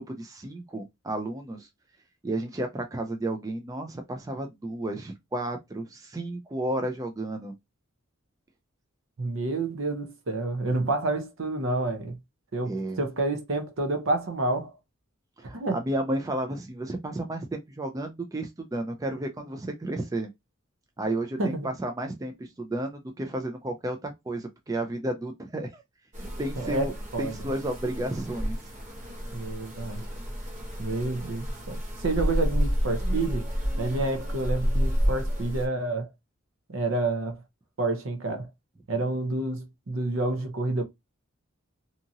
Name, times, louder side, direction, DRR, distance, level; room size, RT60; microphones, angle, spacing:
voice 1, 0.0-1.7 2.2-7.5 12.6-13.0 15.5-20.3 21.0-25.8 26.4-26.9 27.2-28.6, right 1 dB, 15° right, 0.3 m, -32 dB
voice 2, 9.2-12.2 12.5-14.7 15.5-15.8 21.4-21.7 26.6-27.4 29.3-30.1 30.8-33.5 33.8-36.1 36.7-37.4 37.8-38.5 38.9-40.8, right 2 dB, 65° right, 0.7 m, -29 dB
sound 1, 26.1-35.7, equal, 35° right, 0.8 m, -30 dB
2.8 x 2.5 x 2.6 m
head